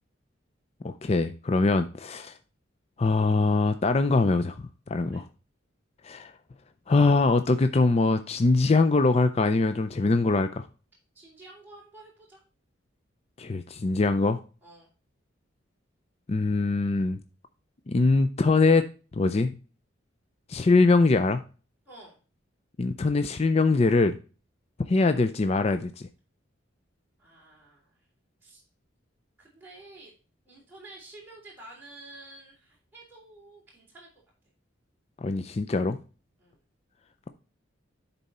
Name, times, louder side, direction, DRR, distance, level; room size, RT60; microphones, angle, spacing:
voice 1, 0.8-2.3 3.0-4.6 4.9-5.2 6.0-6.3 6.9-10.7 13.4-14.4 16.3-17.2 17.9-18.8 19.2-19.5 20.5-21.4 22.8-24.2 24.9-26.1 35.2-36.0, left 3 dB, 30° left, 0.4 m, -23 dB
voice 2, 11.1-12.4 14.6-14.9 21.8-22.2 27.2-28.0 28.4-28.6 29.4-30.1 30.4-34.1 36.4-36.6, right 2 dB, 10° right, 3.2 m, -50 dB
10.0 x 4.1 x 4.1 m
head